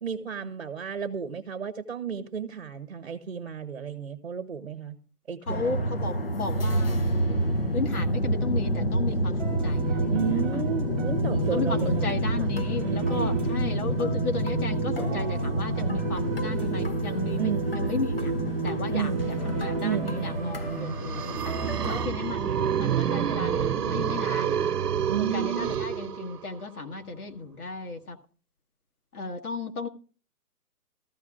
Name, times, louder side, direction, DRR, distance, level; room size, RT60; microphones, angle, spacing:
voice 1, 0.0-5.0 5.3-5.9 10.1-13.6 17.4-17.8 18.9-19.3 19.8-21.0 25.1-25.7, right 7 dB, 40° right, 1.0 m, -33 dB
voice 2, 5.5-7.0 7.3-7.4 7.7-10.6 11.3-18.3 18.6-21.3 21.8-24.6 25.2-28.2 29.1-29.9, left 4 dB, 65° left, 1.7 m, -34 dB
sound 1, 5.5-22.1, equal, 35° left, 0.9 m, -28 dB
sound 2, 9.4-22.0, right 5 dB, 5° right, 1.1 m, -33 dB
sound 3, 20.7-26.6, right 8 dB, 75° right, 0.8 m, -28 dB
19.0 x 14.5 x 2.5 m
hypercardioid pair, 180°, 47 cm